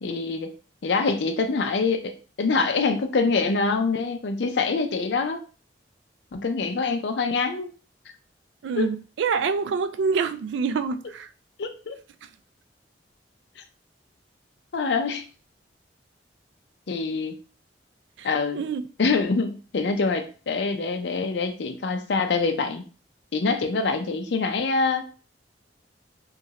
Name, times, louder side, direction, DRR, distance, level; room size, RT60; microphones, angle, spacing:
voice 1, 0.0-0.5 0.8-5.4 6.3-7.7 8.8-8.9 11.6-12.0 13.6-13.7 14.7-15.2 16.9-17.3 18.2-18.6 19.0-22.8 23.3-25.0, left 4 dB, 70° left, 0.5 m, -25 dB
voice 2, 8.6-11.3 18.2-18.3 18.5-18.8, right 5 dB, 85° right, 0.3 m, -26 dB
3.0 x 2.4 x 2.8 m
head